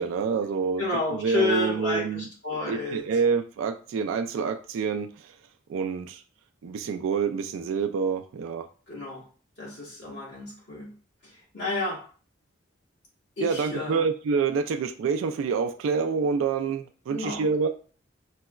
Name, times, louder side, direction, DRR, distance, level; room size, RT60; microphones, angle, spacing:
voice 1, 0.0-0.8 1.1-2.3 2.6-5.3 5.7-6.2 6.6-8.6 13.4-17.7, right 5 dB, 85° right, 6 dB, 0.3 m, -27 dB
voice 2, 0.8-3.1 8.9-9.3 9.6-10.9 11.2-12.1 13.4-14.1 17.1-17.7, left 2 dB, 55° left, -5 dB, 1.5 m, -31 dB
4.6 x 2.1 x 2.2 m, 0.40 s
head